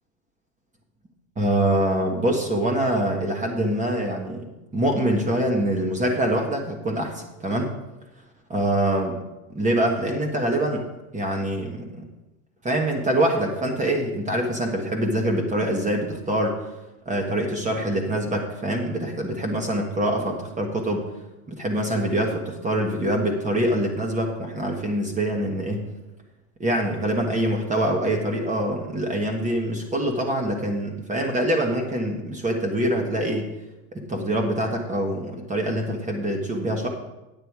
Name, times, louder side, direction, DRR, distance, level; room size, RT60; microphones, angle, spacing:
voice 1, 1.4-4.5 4.7-7.7 8.5-9.2 9.5-10.9 11.1-12.0 12.6-16.6 17.0-21.1 21.5-25.9 26.6-33.5 33.9-36.9, right 1 dB, 20° right, 2 dB, 1.5 m, -24 dB
9.0 x 8.6 x 4.8 m, 1.0 s
supercardioid pair, 115°, 38 cm